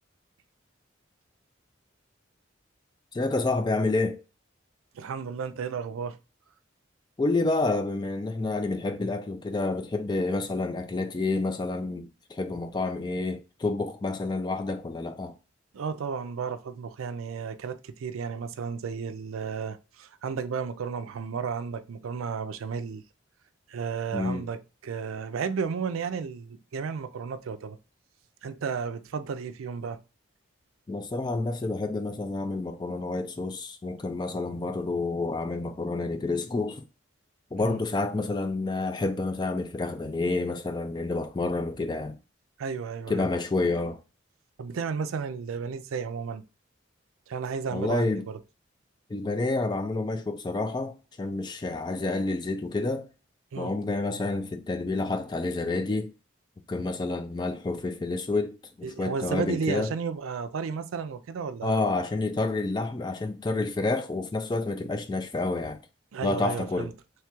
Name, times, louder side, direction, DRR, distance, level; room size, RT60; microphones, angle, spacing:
voice 1, 3.1-4.2 7.2-15.3 24.1-24.5 30.9-36.8 37.5-42.2 43.1-44.0 47.7-48.2 49.1-53.1 53.5-56.1 56.7-59.9 61.6-65.8 66.2-66.9, left 3 dB, 20° left, 0.3 m, -29 dB
voice 2, 4.9-6.2 15.7-23.0 23.7-27.8 28.4-30.0 37.6-37.8 42.6-43.3 44.6-46.4 47.3-48.4 53.5-53.7 58.8-61.9 66.1-66.9, right 6 dB, 90° right, 0.4 m, -33 dB
3.2 x 2.3 x 4.4 m
head